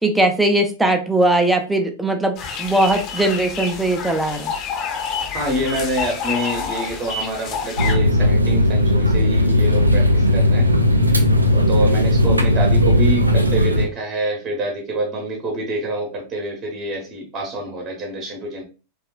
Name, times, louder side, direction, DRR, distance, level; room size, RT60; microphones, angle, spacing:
voice 1, 0.0-4.5, right 1 dB, 5° right, 4 dB, 0.5 m, -19 dB
sound 1, 2.4-8.0, left 5 dB, 40° left, 0.7 m, -28 dB
voice 2, 5.3-10.7 11.5-18.6, right 1 dB, 25° right, 1 dB, 0.9 m, -26 dB
sound 2, 7.8-13.9, left 1 dB, 85° right, 0.3 m, -16 dB
2.9 x 2.3 x 2.2 m, 0.33 s
figure-of-eight pair, 90°, 0 cm